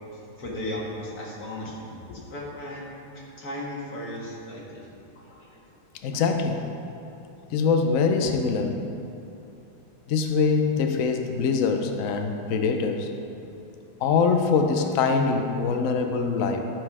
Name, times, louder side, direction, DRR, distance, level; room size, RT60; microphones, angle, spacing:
voice 1, 0.1-2.8 3.1-4.8 5.2-5.6 6.1-6.2, left 1 dB, 50° left, -4 dB, 2.1 m, -36 dB
voice 2, 6.0-6.6 7.5-8.8 10.1-13.1 14.0-16.6, left 5 dB, 90° left, 5 dB, 0.7 m, -23 dB
13.0 x 5.3 x 4.8 m, 2.7 s
omnidirectional pair, 2.3 m